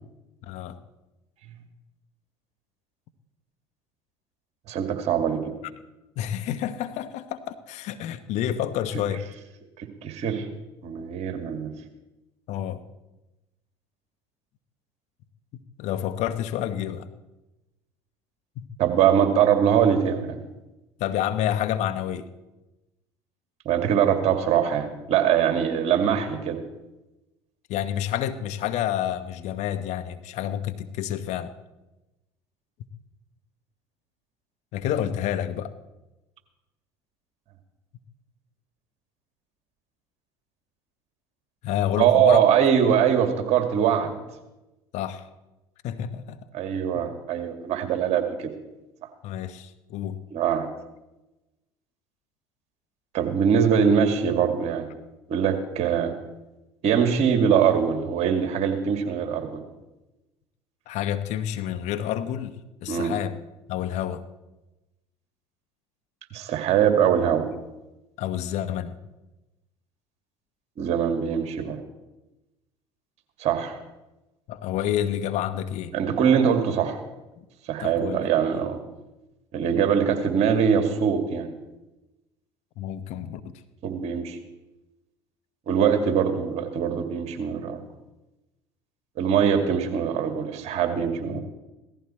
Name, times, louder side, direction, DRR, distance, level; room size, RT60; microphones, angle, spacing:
voice 1, 0.4-0.8 6.2-9.2 12.5-12.8 15.8-17.1 18.6-18.7 21.0-22.3 26.1-26.2 27.7-31.5 34.7-35.7 41.6-42.5 44.9-45.3 45.8-46.4 46.9-47.0 49.2-50.2 60.9-62.5 62.8-63.3 63.7-64.2 68.2-69.0 74.5-75.9 77.4-77.5 77.8-78.2 78.5-78.6 82.8-83.4 91.3-91.4, left 10 dB, 60° left, 11 dB, 1.1 m, -29 dB
voice 2, 4.7-5.4 9.8-10.5 10.8-11.7 18.8-20.4 23.7-26.6 42.0-44.2 46.5-48.5 50.3-50.7 53.1-54.9 55.3-56.1 56.8-59.6 62.9-63.1 66.3-67.5 70.8-71.8 73.4-73.8 75.9-77.0 77.7-78.8 79.5-81.5 83.8-84.4 85.7-87.8 89.2-91.4, right 8 dB, 55° right, 6 dB, 2.2 m, -22 dB
17.0 x 14.5 x 4.4 m, 1.0 s
hypercardioid pair, 70°, 13 cm